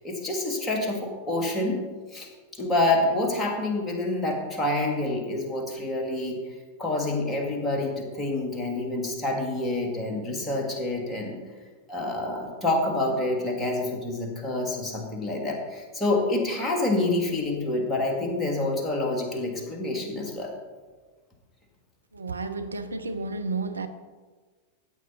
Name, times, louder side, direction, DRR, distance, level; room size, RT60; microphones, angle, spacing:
voice 1, 0.0-1.8 2.1-6.4 6.8-11.4 11.9-20.5, left 2 dB, 15° left, 0 dB, 2.5 m, -27 dB
voice 2, 22.1-23.9, right 3 dB, 75° right, 8 dB, 0.7 m, -31 dB
14.0 x 8.8 x 4.2 m, 1.4 s
figure-of-eight pair, 90°, 0 cm